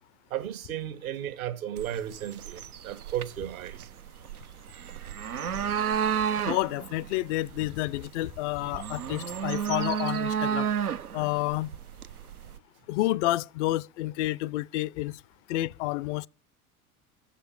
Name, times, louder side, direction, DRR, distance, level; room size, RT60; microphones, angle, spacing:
voice 1, 0.3-3.9, right 11 dB, 70° right, 1.4 m, -34 dB
sound 1, 1.8-12.6, right 8 dB, 90° right, 0.7 m, -32 dB
voice 2, 6.5-10.7 11.1-11.7 12.9-15.2 15.5-16.3, left 17 dB, 55° left, 0.6 m, -29 dB
9.9 x 6.9 x 7.1 m
figure-of-eight pair, 80°, 43 cm